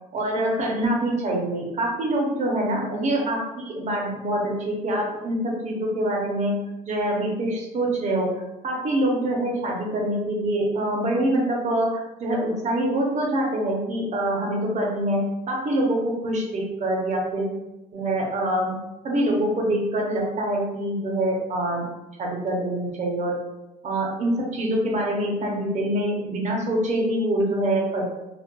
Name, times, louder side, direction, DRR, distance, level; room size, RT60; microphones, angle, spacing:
voice 1, 0.1-17.5 17.9-18.8 19.0-21.9 22.2-23.4 23.8-28.0, right 1 dB, 45° right, -1 dB, 0.8 m, -25 dB
2.9 x 2.4 x 2.2 m, 0.96 s
cardioid pair, 110°, 17 cm